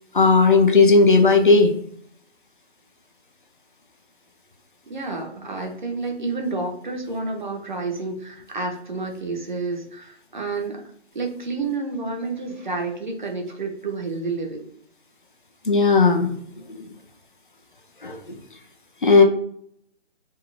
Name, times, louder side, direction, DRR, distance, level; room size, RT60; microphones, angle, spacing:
voice 1, 0.1-1.7 15.7-16.3 16.7-16.9 18.0-18.4 19.0-19.2, left 4 dB, 50° left, 3 dB, 0.4 m, -15 dB
voice 2, 4.9-10.8 11.1-14.7, right 3 dB, 45° right, 2 dB, 0.5 m, -29 dB
2.6 x 2.1 x 2.9 m, 0.65 s
figure-of-eight pair, 150°, 35 cm